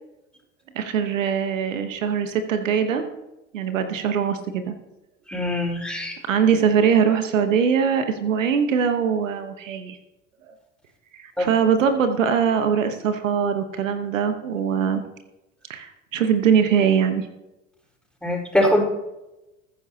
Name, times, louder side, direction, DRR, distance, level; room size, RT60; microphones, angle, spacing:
voice 1, 0.7-3.1 3.5-4.7 6.3-10.0 11.2-15.0 15.7-17.3, right 7 dB, 80° right, 8 dB, 1.2 m, -22 dB
voice 2, 5.3-6.2 11.4-11.5 18.2-18.8, left 1 dB, ahead, -2 dB, 4.7 m, -22 dB
21.0 x 9.7 x 2.9 m, 0.96 s
hypercardioid pair, 75°, 38 cm